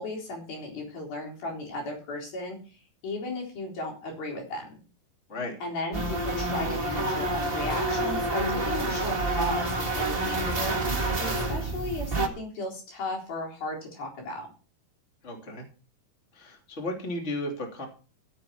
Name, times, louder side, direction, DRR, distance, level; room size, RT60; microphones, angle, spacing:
voice 1, 0.0-4.8 5.6-10.8 11.2-14.5, left 2 dB, 70° left, -1 dB, 5.8 m, -35 dB
sound 1, 5.9-12.3, right 2 dB, 45° right, 0.7 m, -28 dB
voice 2, 15.2-15.7 16.3-17.9, left 1 dB, 20° left, 2 dB, 2.7 m, -34 dB
16.0 x 8.0 x 4.6 m, 0.36 s
omnidirectional pair, 4.4 m